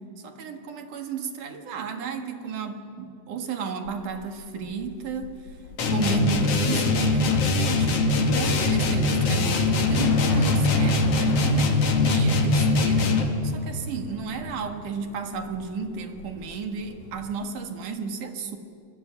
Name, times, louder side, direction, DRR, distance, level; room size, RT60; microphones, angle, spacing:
voice 1, 0.2-5.3 5.9-18.6, right 5 dB, 60° right, 5 dB, 2.8 m, -33 dB
Thunder / Rain, 3.8-17.3, left 4 dB, 80° left, 4.1 m, -38 dB
sound 1, 5.8-13.4, left 2 dB, 45° left, 2.6 m, -22 dB
26.0 x 21.0 x 9.5 m, 2.3 s
omnidirectional pair, 4.5 m